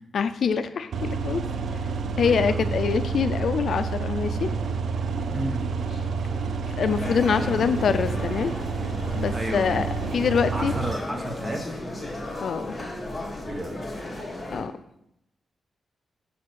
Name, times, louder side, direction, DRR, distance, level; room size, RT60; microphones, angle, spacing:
voice 1, 0.1-1.4 2.2-4.5 6.8-8.5 9.1-10.7 12.4-12.6 14.5-14.7, left 6 dB, 65° left, 11 dB, 0.4 m, -25 dB
sound 1, 0.9-10.9, right 5 dB, 65° right, 0.5 m, -29 dB
voice 2, 2.2-2.7 5.3-5.6 9.3-9.9 10.5-11.8 13.5-13.8, right 1 dB, 20° right, 2 dB, 1.3 m, -32 dB
sound 2, 6.9-14.6, left 1 dB, 15° left, 1.8 m, -35 dB
5.8 x 4.9 x 6.3 m, 0.79 s
wide cardioid pair, 130°, 0 cm